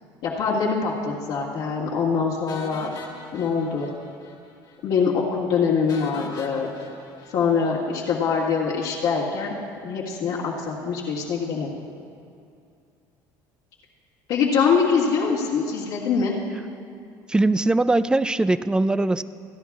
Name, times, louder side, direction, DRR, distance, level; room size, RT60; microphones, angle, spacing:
voice 1, 0.2-2.9 3.3-3.9 4.8-6.7 7.3-9.6 9.8-11.7 14.3-16.3, left 5 dB, 70° left, -6 dB, 1.9 m, -23 dB
sound 1, 2.5-4.4 4.6-4.8 5.1-5.2 5.9-8.2, left 3 dB, 50° left, 1.9 m, -42 dB
voice 2, 17.3-19.2, right 2 dB, 10° right, 14 dB, 0.4 m, -21 dB
27.5 x 10.0 x 2.4 m, 2.5 s
supercardioid pair, 95°, 9 cm